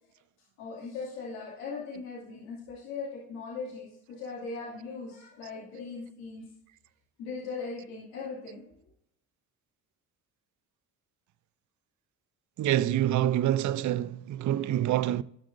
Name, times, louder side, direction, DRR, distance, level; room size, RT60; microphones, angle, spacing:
voice 1, 0.6-6.5 7.2-8.7, left 4 dB, 85° left, 2.5 m, -39 dB
voice 2, 12.6-15.2, right 12 dB, 50° right, 0.5 m, -26 dB
18.5 x 6.2 x 2.6 m
supercardioid pair, 60°, 40 cm